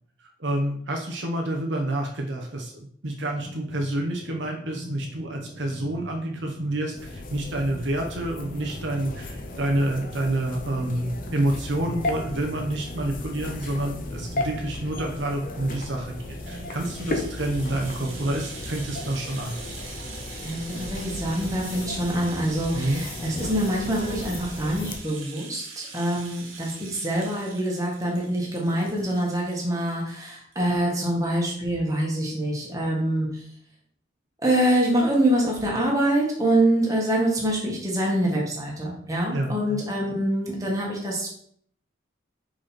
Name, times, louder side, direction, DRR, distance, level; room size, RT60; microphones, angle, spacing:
voice 1, 0.4-19.6 22.7-23.0 39.3-39.8, right 1 dB, 65° right, 1 dB, 1.0 m, -28 dB
sound 1, 3.1-18.4, equal, 5° left, 1.3 m, -43 dB
sound 2, 7.0-25.0, left 2 dB, 45° left, 0.8 m, -35 dB
Rattle (instrument), 16.1-30.2 30.5-30.6 30.9-31.0, right 5 dB, 90° right, 1.3 m, -43 dB
voice 2, 20.4-33.4 34.4-41.3, right 1 dB, 15° right, -3 dB, 1.7 m, -25 dB
5.6 x 5.2 x 4.4 m, 0.64 s
head